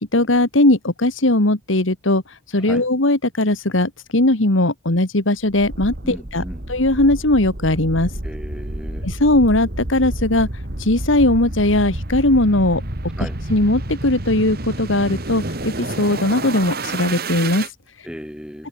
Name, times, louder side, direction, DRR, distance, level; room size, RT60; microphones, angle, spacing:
voice 1, 0.1-8.1 9.0-12.8 13.2-18.1, left 1 dB, 80° left, 2.4 m, -19 dB
sound 1, 5.5-17.7, right 1 dB, 50° right, 2.8 m, -29 dB
voice 2, 6.0-6.7 8.2-9.1 13.2-13.4 18.0-18.7, equal, 5° right, 6.9 m, -35 dB
head